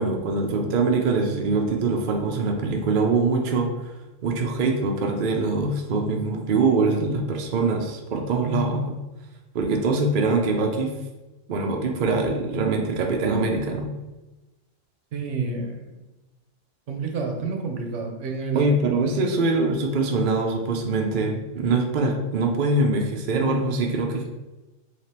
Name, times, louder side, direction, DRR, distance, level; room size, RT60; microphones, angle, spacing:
voice 1, 0.0-3.7 4.2-9.0 9.5-10.9 11.5-13.9 18.5-24.3, right 3 dB, 55° right, 2 dB, 0.6 m, -23 dB
voice 2, 15.1-15.8 16.9-18.7, right 4 dB, 70° right, 2 dB, 1.0 m, -29 dB
3.4 x 2.8 x 4.2 m, 1.1 s
omnidirectional pair, 1.3 m